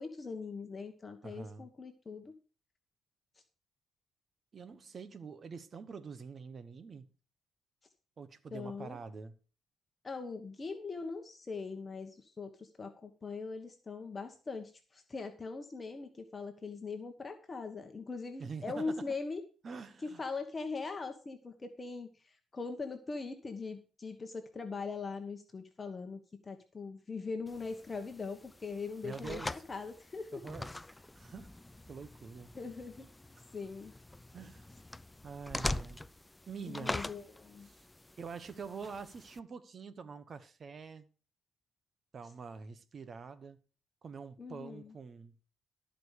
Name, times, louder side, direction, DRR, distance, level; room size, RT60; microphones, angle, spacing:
voice 1, 0.0-2.3 8.5-9.0 10.0-19.4 20.0-30.4 32.5-33.1 33.5-33.9 36.7-37.7 44.4-44.9, left 4 dB, 30° left, 1.3 m, -41 dB
voice 2, 1.2-1.7 4.5-7.1 8.2-9.4 18.4-19.0 19.6-20.2 29.0-29.6 30.3-31.5 31.9-32.5 33.4-33.5 34.3-34.7 35.2-36.1 36.5-37.0 37.6-37.9 38.2-41.1 42.1-43.6 44.0-45.5, right 5 dB, 45° right, 1.2 m, -46 dB
sound 1, 27.5-39.4, left 1 dB, 10° left, 0.4 m, -43 dB
12.5 x 5.2 x 6.6 m
cardioid pair, 90°, 0 cm